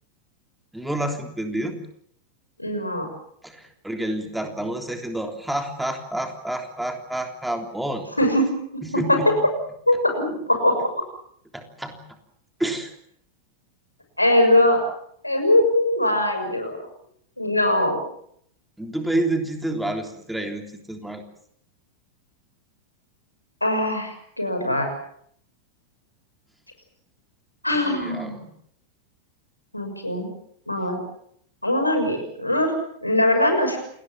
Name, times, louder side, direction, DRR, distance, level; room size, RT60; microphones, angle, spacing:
voice 1, 0.7-1.8 3.4-8.0 8.8-9.3 11.5-12.0 12.6-12.9 18.8-21.2 27.8-28.4, right 1 dB, 5° right, 4 dB, 3.4 m, -29 dB
voice 2, 2.6-3.1 8.2-8.5 8.9-9.2 9.9-10.8 14.2-14.8 15.2-16.8 17.4-18.0 23.6-24.9 27.6-28.5 29.7-30.3 30.7-31.0 31.6-32.7 33.0-33.8, left 1 dB, 85° left, 5 dB, 6.4 m, -21 dB
28.5 x 20.0 x 7.6 m, 0.68 s
figure-of-eight pair, 90°, 0 cm